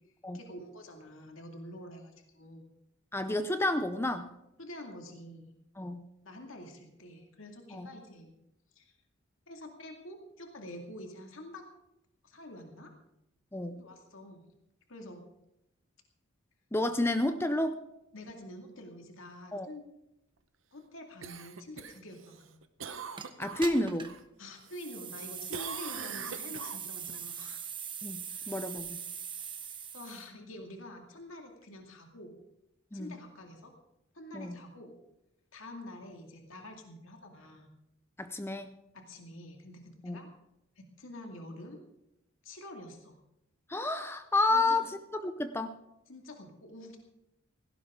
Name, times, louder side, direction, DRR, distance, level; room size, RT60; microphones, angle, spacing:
voice 1, 0.3-2.7 4.6-5.5 6.2-8.3 8.8-8.9 9.5-11.6 12.2-12.9 13.7-14.4 14.9-15.2 18.1-19.8 20.7-22.5 24.4-27.6 28.3-28.5 29.9-32.3 32.9-33.7 34.1-34.9 35.5-37.7 38.9-40.3 40.8-41.8 42.4-43.2 44.5-44.9 46.1-47.0, left 1 dB, 70° left, 3 dB, 2.2 m, -47 dB
voice 2, 3.1-4.3 5.8-6.0 7.7-7.9 13.5-13.8 16.7-17.8 19.5-19.7 23.4-24.1 28.0-29.0 32.9-33.2 34.3-34.6 38.2-38.7 40.0-40.2 43.7-45.8, left 2 dB, 10° left, 9 dB, 0.6 m, -30 dB
Cough, 21.2-24.2 24.6-25.2 25.5-27.2 31.6-31.7, right 6 dB, 65° right, 0.9 m, -43 dB
sound 1, 23.2-23.3 23.6-24.2 24.7-30.3, right 7 dB, 25° right, 1.1 m, -41 dB
17.0 x 16.5 x 3.7 m, 0.86 s
head